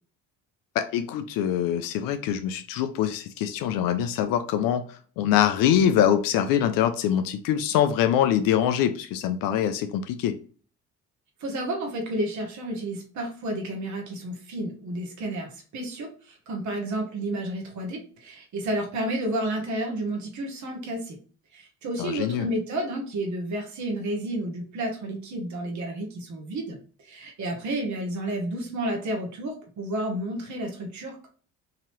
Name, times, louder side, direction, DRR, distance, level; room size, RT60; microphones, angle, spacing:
voice 1, 0.7-10.3 22.0-22.5, left 10 dB, 75° left, 9 dB, 0.5 m, -24 dB
voice 2, 11.4-21.2 21.5-31.3, right 1 dB, 55° right, 1 dB, 1.3 m, -31 dB
3.9 x 2.8 x 3.1 m, 0.41 s
supercardioid pair, 70°, 34 cm